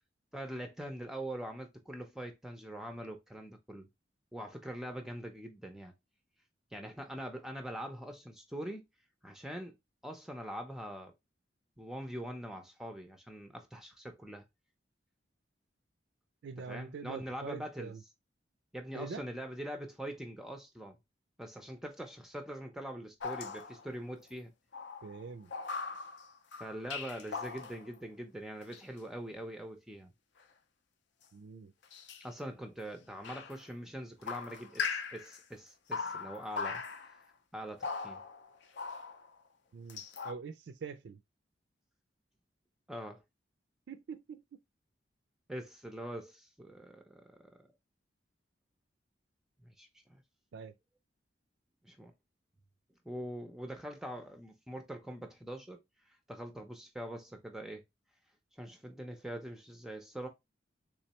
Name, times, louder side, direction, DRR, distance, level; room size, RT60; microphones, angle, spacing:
voice 1, 0.3-3.9 4.3-5.9 6.7-8.8 9.2-9.7 10.0-11.1 11.8-14.4 16.6-17.9 18.7-21.0 21.4-24.5 26.6-30.1 32.2-36.8 37.5-38.2 42.9-43.2 45.5-47.2 49.6-50.2 51.8-52.1 53.1-55.8 56.3-57.8 58.6-60.3, right 1 dB, 5° right, 0.4 m, -43 dB
voice 2, 16.4-18.0 18.9-19.2 25.0-25.5 31.3-31.7 39.7-41.2 43.9-44.6 50.5-50.7, right 5 dB, 70° right, 0.4 m, -44 dB
sound 1, 23.2-24.0 24.7-27.9 28.7-28.8 31.8-32.2 33.2-33.6 34.2-35.4 35.9-37.2 37.8-39.3 39.9-40.3, left 5 dB, 70° left, 0.5 m, -40 dB
3.6 x 3.1 x 2.8 m
head